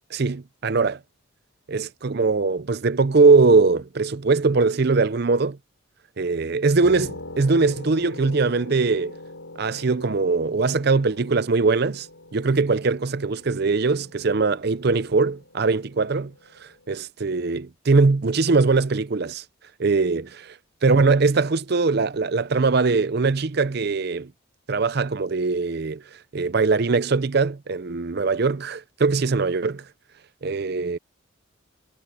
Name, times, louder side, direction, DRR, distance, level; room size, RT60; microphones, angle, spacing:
voice 1, 0.1-1.0 1.7-5.6 6.2-9.2 9.6-12.1 12.3-16.3 16.6-19.4 19.8-20.5 20.8-24.3 24.7-26.0 26.3-29.8 30.4-31.0, right 4 dB, 50° right, 0.6 m, -21 dB
sound 1, 6.8-17.0, left 2 dB, 85° left, 3.7 m, -43 dB
head